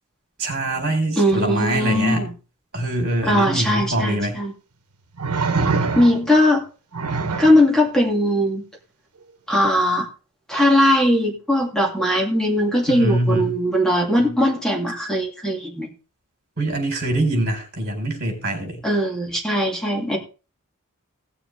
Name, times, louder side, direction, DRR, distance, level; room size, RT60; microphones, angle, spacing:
voice 1, 0.4-2.3 2.7-4.4 12.9-13.5 16.6-18.8, right 1 dB, 45° right, 4.2 m, -23 dB
voice 2, 1.2-2.3 3.2-4.5 5.9-6.6 7.4-8.6 9.5-10.1 10.5-15.9 18.8-20.2, left 1 dB, 5° left, 2.5 m, -19 dB
sound 1, 3.8-3.9 5.2-6.4 6.9-7.6 9.5-9.7, right 4 dB, 85° right, 1.2 m, -24 dB
17.5 x 6.9 x 3.3 m
head